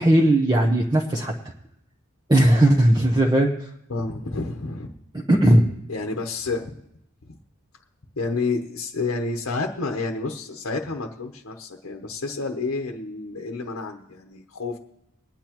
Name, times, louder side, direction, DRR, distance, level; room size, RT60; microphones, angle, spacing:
voice 1, 0.0-1.3 2.3-3.5 5.3-5.7, right 1 dB, 20° right, -1 dB, 0.9 m, -17 dB
voice 2, 3.9-4.9 5.9-6.8 7.2-7.4 8.1-14.8, left 3 dB, 60° left, 3 dB, 1.0 m, -30 dB
21.5 x 9.8 x 3.0 m, 0.80 s
head